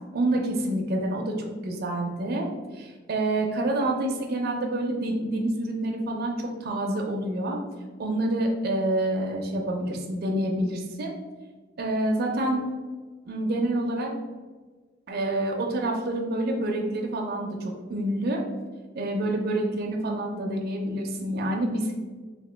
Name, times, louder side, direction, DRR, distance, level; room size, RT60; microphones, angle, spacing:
voice 1, 0.1-2.5 2.7-7.6 8.0-11.1 11.8-12.7 13.3-14.1 15.1-18.4 18.9-21.9, right 1 dB, 55° right, 0 dB, 0.4 m, -27 dB
2.8 x 2.7 x 3.3 m, 1.4 s
head